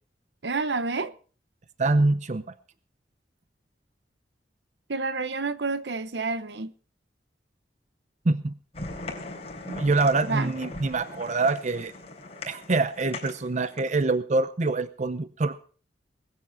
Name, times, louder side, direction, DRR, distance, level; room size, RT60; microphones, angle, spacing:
voice 1, 0.4-1.1 4.9-6.7 10.3-10.5, right 3 dB, 75° right, 0.9 m, -29 dB
voice 2, 1.8-2.4 8.2-8.5 9.7-11.9 12.5-15.6, right 3 dB, 45° right, 0.7 m, -25 dB
sound 1, 8.7-14.0, left 2 dB, 35° left, 3.9 m, -40 dB
20.5 x 8.5 x 5.8 m
head